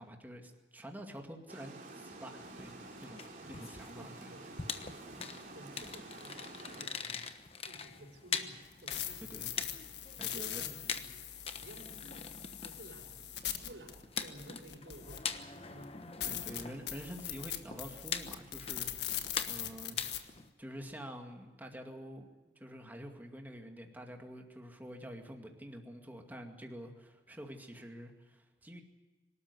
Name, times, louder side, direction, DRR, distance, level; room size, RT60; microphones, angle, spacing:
voice 1, 0.0-3.2 3.5-4.3 9.2-9.5 10.2-10.7 16.2-20.0 20.6-22.3 22.6-28.8, equal, 10° right, 3 dB, 2.2 m, -48 dB
Water, 1.5-6.9, right 2 dB, 45° right, 3.5 m, -50 dB
sound 1, 2.4-20.5, left 6 dB, 35° left, 1.2 m, -44 dB
voice 2, 3.9-4.5 4.7-6.4 6.7-7.3 7.6-9.7 10.3-11.2 11.5-12.3 12.6-15.4 15.7-16.0, right 1 dB, 85° right, 2 dB, 4.5 m, -54 dB
sound 2, 8.6-15.4 15.8-15.9 16.2-20.2, left 11 dB, 70° left, 1.6 m, -41 dB
25.0 x 13.0 x 9.6 m, 1.2 s
head